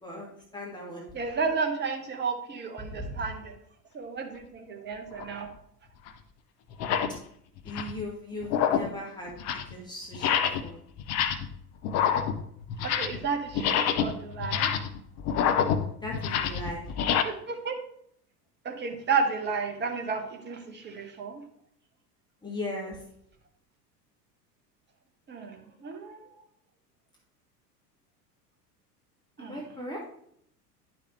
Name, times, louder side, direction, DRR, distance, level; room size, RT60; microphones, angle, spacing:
voice 1, 0.0-1.0 2.9-3.3 7.6-9.3 9.7-10.8 16.0-16.8 22.4-23.0 29.4-30.0, left 1 dB, 10° left, -4 dB, 1.8 m, -38 dB
voice 2, 1.1-3.5 3.9-5.5 12.8-14.7 17.2-17.7 18.6-21.4 25.3-26.3 29.4-29.6, right 5 dB, 20° right, 5 dB, 1.3 m, -32 dB
sound 1, 5.1-5.3 6.1-6.2 6.7-7.2 7.6-8.0 8.4-9.0 9.3-9.7 10.1-10.7 11.0-11.6 11.8-13.3 13.5-17.2, left 8 dB, 35° left, 0.7 m, -27 dB
10.0 x 6.0 x 3.1 m, 0.67 s
figure-of-eight pair, 80°, 48 cm